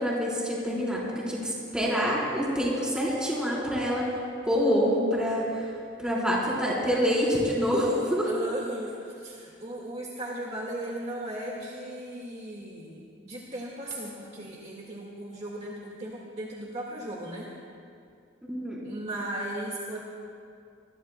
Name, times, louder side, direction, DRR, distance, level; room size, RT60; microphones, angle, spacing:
voice 1, 0.0-5.7 6.0-8.3 18.5-18.8, equal, 5° right, -6 dB, 3.9 m, -26 dB
voice 2, 8.2-17.5 18.8-20.0, right 1 dB, 35° right, -3 dB, 1.8 m, -37 dB
25.5 x 21.0 x 2.2 m, 2.4 s
head